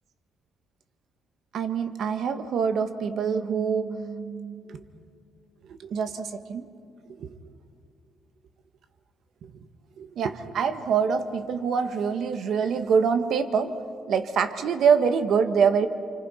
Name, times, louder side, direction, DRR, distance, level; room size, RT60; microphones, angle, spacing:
voice 1, 1.5-4.8 5.7-6.7 7.2-7.3 10.0-13.7 14.1-15.9, right 6 dB, 60° right, 9 dB, 1.5 m, -25 dB
28.0 x 25.0 x 5.7 m, 2.3 s
cardioid pair, 130°, 0 cm